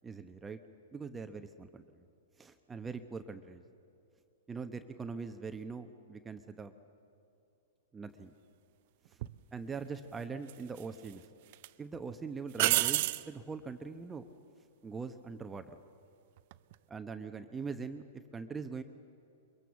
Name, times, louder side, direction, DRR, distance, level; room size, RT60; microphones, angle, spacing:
voice 1, 0.0-0.6 0.9-2.1 2.4-3.6 4.5-6.7 7.9-8.3 9.1-9.2 9.5-11.2 11.8-14.2 14.8-15.8 16.9-18.8, right 5 dB, 15° right, 8 dB, 1.0 m, -42 dB
sound 1, 9.2-9.4 10.5-11.1 11.5-11.7 12.6-13.3 16.4-16.7, right 18 dB, 55° right, 0.6 m, -29 dB
23.0 x 22.5 x 7.1 m, 2.6 s
hypercardioid pair, 120°, 0 cm